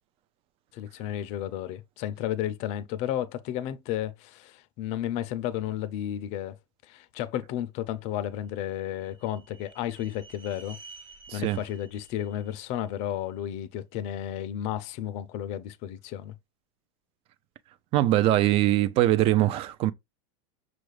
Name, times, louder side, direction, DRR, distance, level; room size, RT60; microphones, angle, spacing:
voice 1, 0.7-6.5 6.9-10.8 11.3-16.3, left 11 dB, 45° left, 0.5 m, -33 dB
sound 1, 8.3-13.5, right 3 dB, 80° right, 1.3 m, -52 dB
voice 2, 11.3-11.6 17.9-19.9, right 14 dB, 35° right, 0.4 m, -22 dB
6.1 x 2.4 x 3.2 m
supercardioid pair, 140°, 16 cm